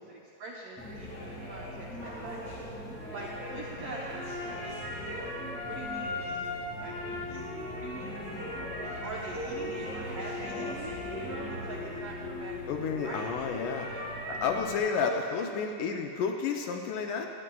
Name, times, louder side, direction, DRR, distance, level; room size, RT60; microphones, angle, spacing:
voice 1, 0.0-2.6 3.1-5.3 5.7-8.1 8.8-13.5 13.8-14.1 15.0-15.2 15.5-15.6, right 3 dB, 90° right, -3 dB, 1.3 m, -44 dB
sound 1, 0.8-14.8, left 1 dB, 5° left, 1.2 m, -38 dB
voice 2, 12.7-13.9 14.3-17.3, left 6 dB, 80° left, 3 dB, 2.0 m, -31 dB
21.5 x 8.7 x 2.3 m, 2.7 s
omnidirectional pair, 4.0 m